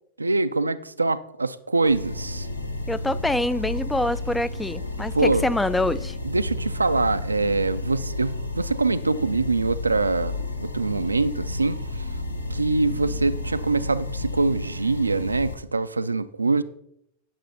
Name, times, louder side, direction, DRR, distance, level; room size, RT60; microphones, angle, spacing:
voice 1, 0.2-2.5 5.1-5.5 6.2-12.1 12.5-16.6, right 3 dB, 80° right, 0.4 m, -24 dB
sound 1, 1.8-15.5, left 2 dB, 85° left, 0.8 m, -32 dB
voice 2, 2.9-6.2, left 1 dB, 5° left, 0.3 m, -25 dB
10.5 x 6.6 x 4.1 m
figure-of-eight pair, 90°, 0 cm